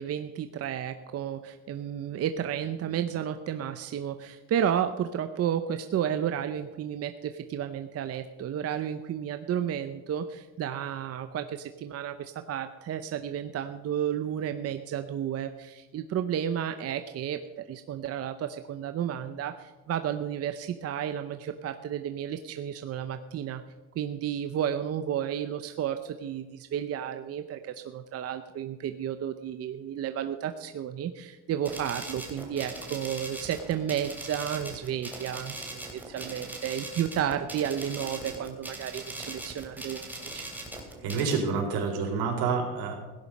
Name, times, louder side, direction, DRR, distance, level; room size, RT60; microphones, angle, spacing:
voice 1, 0.0-17.4 17.7-23.6 24.0-40.5, right 9 dB, 35° right, 8 dB, 0.7 m, -32 dB
sound 1, 31.6-41.4, right 2 dB, 5° right, 2.8 m, -40 dB
voice 2, 41.0-42.9, right 5 dB, 70° right, 1 dB, 4.2 m, -28 dB
16.5 x 10.5 x 5.3 m, 1.2 s
cardioid pair, 130°, 41 cm